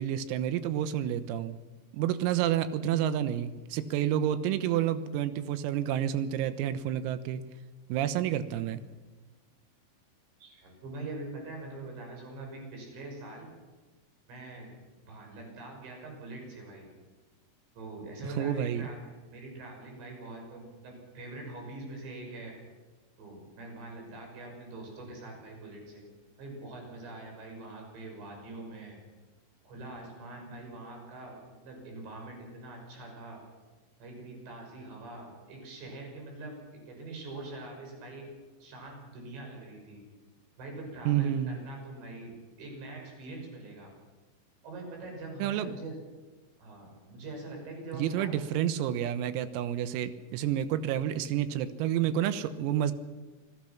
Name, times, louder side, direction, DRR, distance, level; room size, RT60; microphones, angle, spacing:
voice 1, 0.0-1.6 1.9-7.4 7.9-8.8 18.4-18.9 41.1-41.6 45.4-45.7 47.9-52.9, right 10 dB, 85° right, 3.8 m, -29 dB
voice 2, 10.4-13.5 14.3-14.7 15.0-16.9 17.7-19.0 19.3-22.5 23.2-26.0 26.4-29.0 29.6-33.4 34.0-38.3 38.6-40.0 40.6-42.3 42.6-43.9 44.6-46.0 46.6-48.5, right 2 dB, 60° right, 8.1 m, -43 dB
27.5 x 18.5 x 6.0 m
omnidirectional pair, 6.0 m